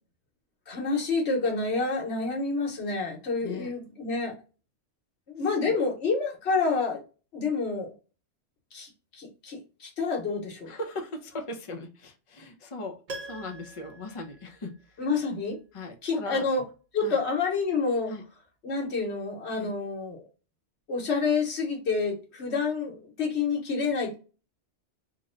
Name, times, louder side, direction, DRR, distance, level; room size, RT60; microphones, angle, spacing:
voice 1, 0.7-4.3 5.3-7.0 7.3-7.9 8.7-10.7 15.0-15.6 16.0-16.6 16.9-18.1 18.6-20.2 20.9-24.1, left 4 dB, 70° left, 1.3 m, -28 dB
voice 2, 3.4-3.7 5.7-5.8 10.7-15.0 15.7-16.5 17.0-17.2 18.1-18.2 19.6-19.7, left 2 dB, 35° left, 0.6 m, -38 dB
Piano, 13.1-15.2 15.5-15.6, right 2 dB, 40° right, 0.6 m, -43 dB
2.9 x 2.1 x 3.7 m
omnidirectional pair, 1.2 m